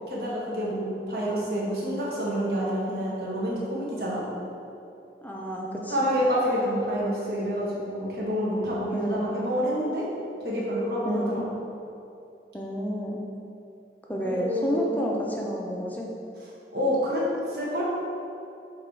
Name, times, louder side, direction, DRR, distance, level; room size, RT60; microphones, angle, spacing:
voice 1, 0.1-4.2 5.9-10.0 10.4-11.2 14.2-15.0 16.7-17.8, equal, 60° right, -6 dB, 1.5 m, -28 dB
voice 2, 5.2-6.0 8.9-9.3 11.0-11.5 12.5-13.2 14.1-16.1, equal, 10° left, -2 dB, 0.6 m, -30 dB
7.3 x 3.0 x 4.7 m, 2.7 s
head